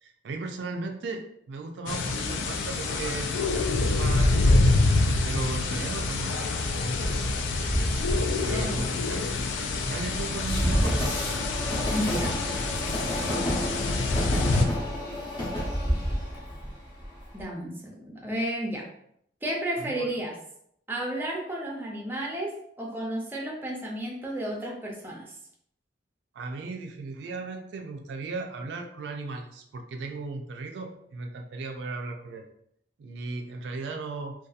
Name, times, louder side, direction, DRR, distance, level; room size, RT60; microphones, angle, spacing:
voice 1, 0.0-3.3 3.8-5.0 5.2-7.6 8.4-9.2 9.8-11.2 19.8-20.1 26.3-32.5 33.0-34.3, right 3 dB, 70° right, 3 dB, 0.3 m, -36 dB
sound 1, 1.9-14.7, left 2 dB, 85° left, 0.3 m, -26 dB
Train, 7.0-17.4, equal, 25° left, 0.7 m, -30 dB
voice 2, 8.5-8.9 11.9-12.3 17.3-18.8 19.4-20.3 20.9-22.5 22.8-25.3, right 1 dB, 10° right, -2 dB, 0.5 m, -32 dB
2.6 x 2.3 x 2.3 m, 0.72 s
head